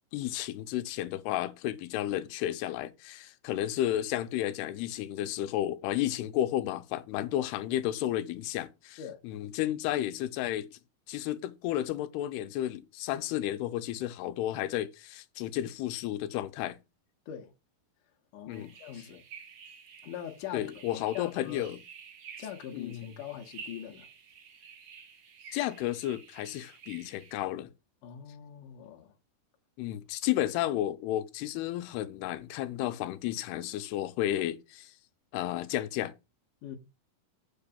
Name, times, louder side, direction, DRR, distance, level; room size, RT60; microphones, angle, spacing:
voice 1, 0.1-10.7 11.1-16.8 18.5-18.7 20.5-21.8 22.7-23.1 25.5-27.7 29.8-34.9 35.3-36.1, left 13 dB, 85° left, 2.7 m, -32 dB
voice 2, 18.3-19.2 20.0-21.7 22.4-24.1 28.0-29.1 36.6-36.8, left 9 dB, 65° left, 2.3 m, -42 dB
sound 1, 18.5-27.4, right 6 dB, 60° right, 1.5 m, -51 dB
7.8 x 4.6 x 7.1 m
omnidirectional pair, 4.7 m